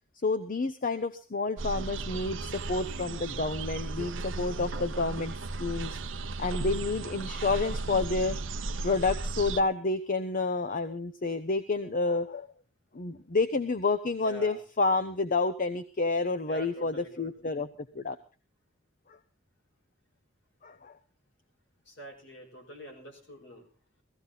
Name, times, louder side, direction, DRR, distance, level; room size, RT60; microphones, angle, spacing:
voice 1, 0.2-5.3 5.6-6.0 6.4-8.4 8.8-12.5 12.9-17.7 17.9-18.2 20.6-20.9, left 3 dB, 45° left, 11 dB, 0.8 m, -29 dB
sound 1, 1.6-9.6, right 3 dB, 75° right, 0.8 m, -35 dB
voice 2, 14.2-14.6 16.5-17.3 21.9-23.7, right 1 dB, 70° left, 2 dB, 5.4 m, -45 dB
16.5 x 15.0 x 4.0 m, 0.34 s
head